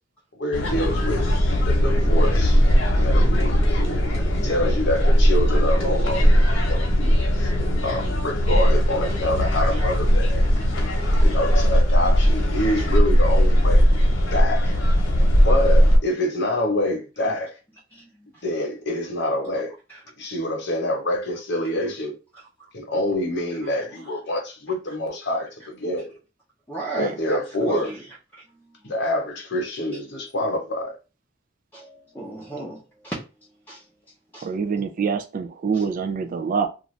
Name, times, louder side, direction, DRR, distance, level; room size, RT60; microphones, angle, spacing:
voice 1, 0.3-1.2 1.6-2.6 2.9-3.6 4.1-7.5 7.8-10.5 11.2-13.9 14.3-14.8 15.4-17.6 18.4-19.7 20.2-22.1 22.7-26.1 27.0-27.9 28.8-31.0, left 1 dB, 65° left, 1.0 m, -26 dB
sound 1, 0.5-16.0, equal, 90° left, 0.9 m, -19 dB
voice 2, 9.5-9.8 17.9-18.3 26.7-28.0 31.7-33.2 33.7-33.8 34.3-34.5 35.7-35.8, right 2 dB, 10° left, 0.7 m, -34 dB
voice 3, 34.4-36.7, right 5 dB, 45° right, 0.3 m, -25 dB
2.4 x 2.4 x 3.1 m
head